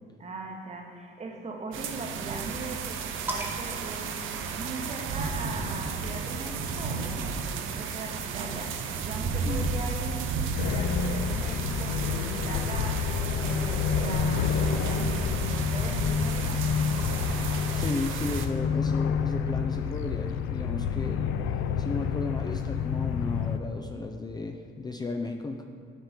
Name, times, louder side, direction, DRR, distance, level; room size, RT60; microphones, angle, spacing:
voice 1, 0.2-4.2 4.6-10.3 10.6-16.7, right 3 dB, 35° right, 2 dB, 1.0 m, -40 dB
sound 1, 1.7-18.5, right 4 dB, 80° right, 0.6 m, -33 dB
sound 2, 3.3-5.1 6.2-7.8, right 1 dB, 10° right, 0.9 m, -41 dB
voice 2, 9.4-9.8 17.7-21.2 21.8-25.6, left 3 dB, 20° left, 3 dB, 0.4 m, -34 dB
sound 3, 10.6-23.6, left 6 dB, 85° left, 0.4 m, -28 dB
6.4 x 5.3 x 4.9 m, 2.4 s
cardioid pair, 90°, 20 cm